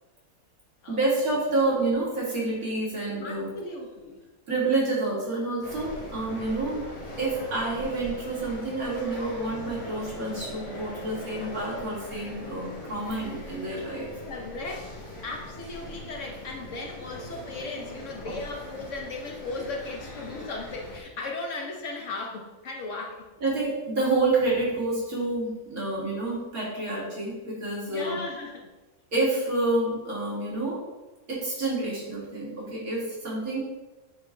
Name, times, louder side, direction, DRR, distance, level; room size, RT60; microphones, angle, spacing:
voice 1, 0.9-3.5 4.5-6.8 7.2-14.1 17.6-17.8 18.3-18.4 23.4-28.2 29.1-30.8 31.3-33.6, right 2 dB, 80° right, -6 dB, 2.7 m, -28 dB
voice 2, 3.2-4.2 14.3-14.9 15.2-23.2 27.9-28.7, left 3 dB, 60° left, 1 dB, 1.2 m, -36 dB
sound 1, 5.6-21.0, left 1 dB, 25° left, 1.3 m, -41 dB
8.5 x 3.6 x 3.7 m, 1.1 s
omnidirectional pair, 1.5 m